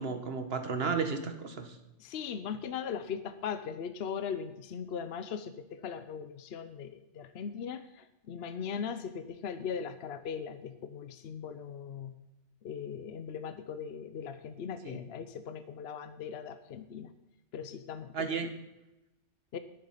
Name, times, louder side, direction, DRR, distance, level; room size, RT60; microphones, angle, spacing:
voice 1, 0.0-1.8 14.8-15.0 18.1-18.5, right 5 dB, 55° right, 8 dB, 1.4 m, -33 dB
voice 2, 2.0-12.2 12.6-17.1 17.5-18.5 19.5-19.6, left 7 dB, 65° left, 11 dB, 0.9 m, -39 dB
10.5 x 10.0 x 5.7 m, 0.92 s
omnidirectional pair, 1.2 m